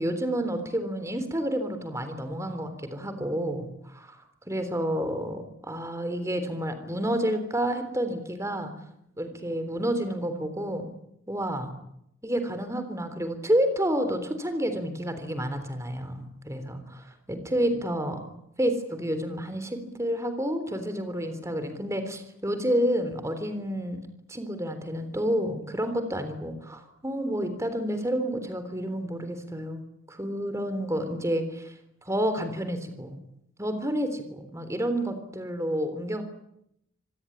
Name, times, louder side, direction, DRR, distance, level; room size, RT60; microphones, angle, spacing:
voice 1, 0.0-4.2 4.5-8.7 9.2-10.8 11.3-11.7 12.2-18.2 18.6-24.0 24.3-31.7 32.0-33.2 33.6-36.2, equal, 15° right, 9 dB, 3.5 m, -29 dB
26.5 x 18.5 x 10.0 m, 0.78 s
head